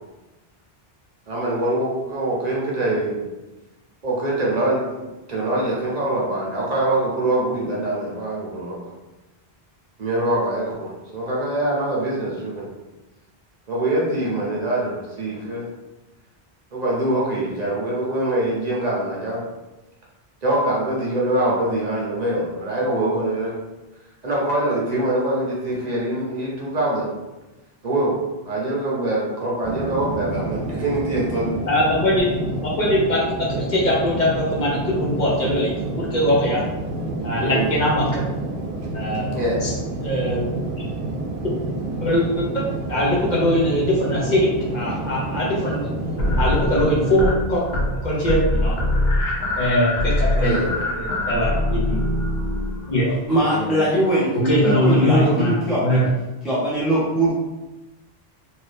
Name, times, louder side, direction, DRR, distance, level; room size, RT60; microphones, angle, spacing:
voice 1, 1.3-3.3 4.0-8.8 10.0-12.7 13.7-15.7 16.7-19.4 20.4-23.5 24.2-27.1 27.8-28.2 28.5-31.5 37.4-37.7 39.3-39.6 50.3-51.0, right 1 dB, 45° right, -4 dB, 0.8 m, -24 dB
sound 1, 29.6-47.3, right 2 dB, 85° right, 0.9 m, -29 dB
voice 2, 31.7-32.3 32.6-36.6 37.2-38.2 38.9-39.7 40.0-40.6 41.4-41.6 42.0-44.5 44.7-45.9 46.4-47.6 47.9-48.8 49.6-50.6 51.0-52.0 52.9-53.2 53.5-53.9 54.4-55.5 55.8-56.1, left 1 dB, 50° left, -4 dB, 0.8 m, -21 dB
sound 2, 46.2-47.4 47.7-48.0 48.3-53.0, left 1 dB, 75° left, 1.0 m, -22 dB
voice 3, 53.3-56.0 56.4-57.4, right 1 dB, ahead, -9 dB, 0.4 m, -21 dB
2.6 x 2.6 x 3.3 m, 1.1 s
omnidirectional pair, 1.0 m